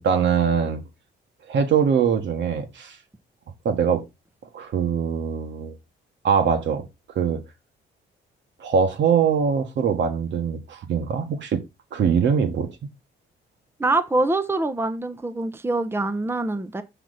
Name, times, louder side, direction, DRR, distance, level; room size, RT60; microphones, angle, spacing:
voice 1, 0.0-0.8 1.5-3.0 3.6-4.0 4.5-5.7 6.2-6.8 7.1-7.4 8.6-11.6 11.9-12.7, right 7 dB, 65° right, 1.6 m, -22 dB
voice 2, 13.8-16.8, right 2 dB, 10° right, 0.8 m, -24 dB
6.0 x 5.9 x 4.2 m
cardioid pair, 90°, 20 cm